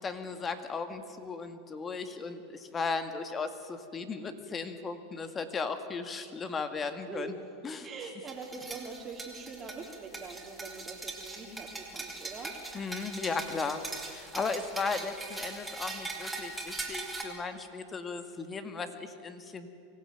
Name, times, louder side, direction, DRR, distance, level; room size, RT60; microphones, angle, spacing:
voice 1, 0.0-7.3 7.6-7.9 12.7-19.7, left 4 dB, 25° left, 8 dB, 1.9 m, -36 dB
voice 2, 7.8-12.5, right 4 dB, 25° right, -3 dB, 3.0 m, -43 dB
sound 1, 8.3-17.2, right 3 dB, 10° right, 3.5 m, -41 dB
24.5 x 16.0 x 9.3 m, 2.6 s
hypercardioid pair, 115°, 0 cm